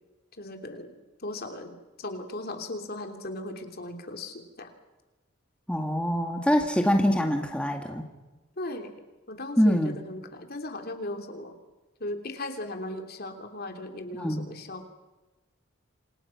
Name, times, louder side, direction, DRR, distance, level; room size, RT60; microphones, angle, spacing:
voice 1, 0.4-0.9 1.2-4.7 8.6-8.9 9.3-11.6 12.0-14.9, left 1 dB, 50° left, 5 dB, 3.3 m, -37 dB
voice 2, 5.7-8.0 9.6-10.0 14.2-14.4, equal, 5° left, 3 dB, 2.0 m, -24 dB
28.5 x 27.0 x 6.0 m, 1.1 s
head